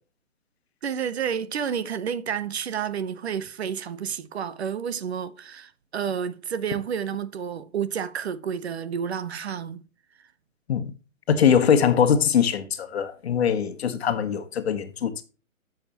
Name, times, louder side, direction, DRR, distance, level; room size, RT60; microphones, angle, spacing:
voice 1, 0.8-9.8, right 7 dB, 50° right, 0.9 m, -30 dB
voice 2, 11.3-15.2, left 7 dB, 50° left, 1.4 m, -22 dB
11.0 x 7.3 x 2.9 m
hypercardioid pair, 140°, 41 cm